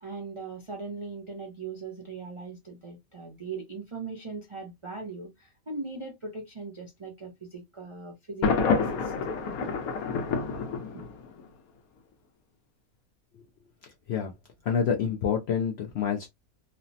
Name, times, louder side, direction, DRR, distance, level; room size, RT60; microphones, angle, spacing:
voice 1, 0.0-9.1 9.6-9.8, right 4 dB, 45° right, 0.4 m, -39 dB
Thunder, 8.4-11.4, left 5 dB, 80° left, 1.1 m, -28 dB
voice 2, 14.6-16.3, left 7 dB, 65° left, 0.6 m, -27 dB
3.2 x 2.0 x 2.5 m
omnidirectional pair, 1.5 m